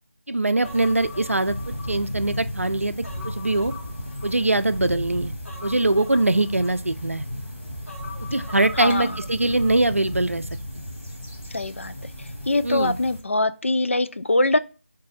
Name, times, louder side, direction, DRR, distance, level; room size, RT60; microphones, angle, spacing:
voice 1, 0.3-1.5 1.9-2.9 3.2-3.7 4.2-5.3 5.6-7.2 8.3-10.4 12.6-13.0, right 2 dB, 90° right, 0.4 m, -22 dB
Human voice, 0.6-2.4 2.8-4.8 5.5-7.2 7.9-9.8 10.1-10.2, left 3 dB, 85° left, 1.2 m, -43 dB
sound 1, 0.6-13.2, equal, 10° left, 0.6 m, -35 dB
voice 2, 8.8-9.2 11.5-11.9 12.2-14.6, left 2 dB, 70° left, 0.4 m, -23 dB
3.9 x 2.6 x 3.6 m
figure-of-eight pair, 165°, 7 cm